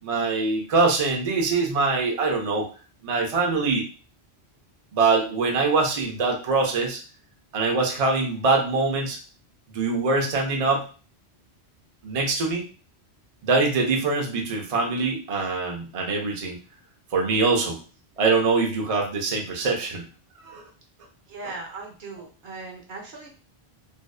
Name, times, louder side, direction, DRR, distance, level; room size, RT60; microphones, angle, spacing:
voice 1, 0.0-2.7 3.0-3.8 4.9-7.0 7.5-9.2 9.7-10.9 12.0-12.7 13.4-16.6 17.1-17.8 18.2-20.0 20.4-20.6, right 3 dB, 45° right, 0 dB, 0.5 m, -23 dB
voice 2, 21.3-23.3, right 3 dB, 70° right, 1 dB, 0.9 m, -38 dB
2.6 x 2.2 x 2.3 m, 0.37 s
omnidirectional pair, 1.1 m